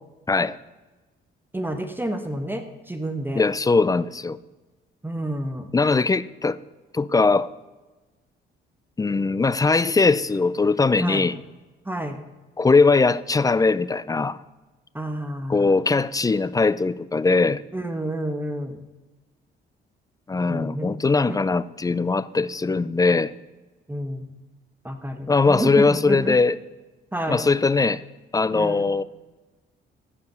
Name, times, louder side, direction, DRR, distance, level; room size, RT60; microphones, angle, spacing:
voice 1, 1.5-3.4 5.0-5.7 11.0-11.3 11.8-12.2 14.9-15.7 17.7-18.8 20.5-20.9 21.3-21.4 23.9-24.3 24.8-26.4 27.1-27.4 28.5-28.9, right 1 dB, 10° right, 1.0 m, -29 dB
voice 2, 3.3-4.4 5.7-6.6 6.9-7.5 9.0-11.4 12.6-14.4 15.5-17.6 20.3-23.3 25.3-26.6 27.3-28.0 28.3-29.0, left 4 dB, 20° left, 0.4 m, -20 dB
14.5 x 5.2 x 6.8 m
cardioid pair, 90°, 20 cm